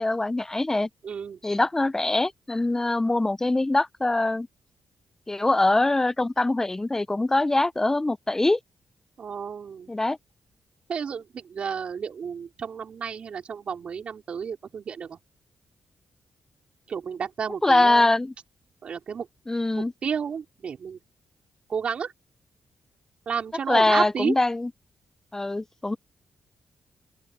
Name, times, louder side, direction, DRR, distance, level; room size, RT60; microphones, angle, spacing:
voice 1, 0.0-0.9 1.4-4.5 5.3-8.6 9.9-10.2 17.6-18.3 19.5-19.9 23.7-24.7 25.3-26.0, left 2 dB, 20° left, 1.0 m, -23 dB
voice 2, 1.0-1.4 9.2-9.9 10.9-15.2 16.9-18.1 18.8-19.3 19.8-21.0 21.7-22.1 23.3-24.4, right 6 dB, 60° right, 5.2 m, -31 dB
open air
supercardioid pair, 45°, 2 cm